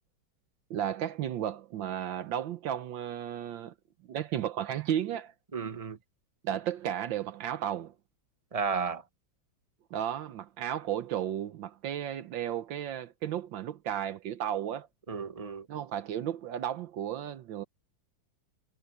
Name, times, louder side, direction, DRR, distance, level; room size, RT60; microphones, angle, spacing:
voice 1, 0.7-3.7 4.1-5.3 6.4-7.9 9.9-14.9 15.7-17.6, right 10 dB, 75° right, 1.5 m, -34 dB
voice 2, 5.5-6.0 8.5-9.0 15.1-15.7, right 5 dB, 20° right, 1.4 m, -33 dB
omnidirectional pair, 2.2 m